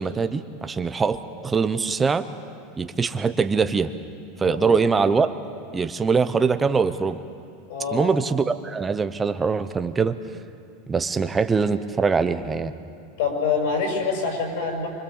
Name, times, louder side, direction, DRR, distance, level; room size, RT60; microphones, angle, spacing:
voice 1, 0.0-2.2 2.8-3.9 4.4-5.3 5.7-7.2 7.9-10.1 10.9-12.7, right 5 dB, 10° right, 10 dB, 0.7 m, -23 dB
voice 2, 4.4-4.7 7.7-8.1 13.2-14.9, left 5 dB, 60° left, 1 dB, 6.3 m, -25 dB
25.5 x 24.0 x 7.2 m, 2.6 s
supercardioid pair, 175°, 0 cm